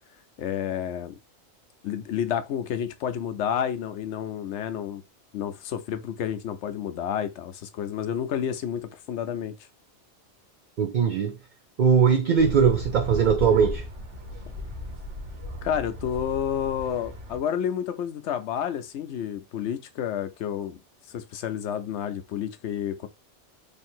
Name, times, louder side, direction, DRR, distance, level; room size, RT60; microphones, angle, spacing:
voice 1, 0.4-1.2 1.8-5.0 5.3-9.5 15.6-20.8 21.1-23.1, left 9 dB, 75° left, 0.9 m, -30 dB
voice 2, 10.8-11.4 11.8-13.8, right 6 dB, 55° right, 0.6 m, -20 dB
sound 1, 12.4-17.4, left 1 dB, 80° right, 1.6 m, -36 dB
3.3 x 2.8 x 4.3 m
omnidirectional pair, 1.2 m